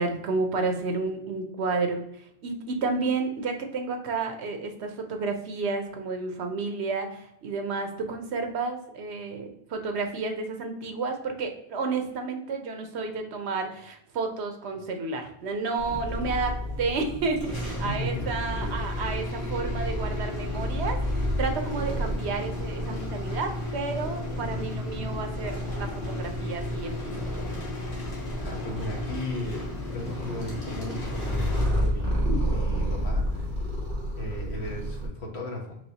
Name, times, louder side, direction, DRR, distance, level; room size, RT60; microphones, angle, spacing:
voice 1, 0.0-27.1, right 4 dB, 80° right, 5 dB, 1.0 m, -31 dB
Purr, 15.8-35.1, equal, 50° right, 1.4 m, -32 dB
sound 1, 17.4-32.3, left 1 dB, 55° left, 1.3 m, -35 dB
voice 2, 17.8-18.3 18.6-18.8 24.3-24.7 27.9-28.0 28.4-32.2 32.4-33.7 34.2-35.8, left 1 dB, 75° left, 0 dB, 1.4 m, -36 dB
4.7 x 3.1 x 2.8 m, 0.76 s
omnidirectional pair, 1.1 m